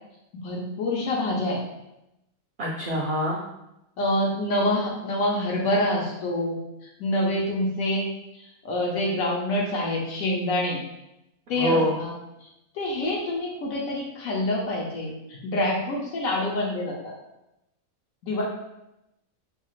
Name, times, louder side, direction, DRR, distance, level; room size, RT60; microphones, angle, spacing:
voice 1, 0.4-1.6 4.0-6.6 7.0-10.8 11.5-12.1 12.4-12.5 12.7-17.1 18.2-18.4, left 1 dB, 80° left, -3 dB, 1.0 m, -26 dB
voice 2, 2.6-3.4 11.5-11.9, equal, 65° right, -3 dB, 0.6 m, -25 dB
2.8 x 2.3 x 3.0 m, 0.88 s
omnidirectional pair, 1.4 m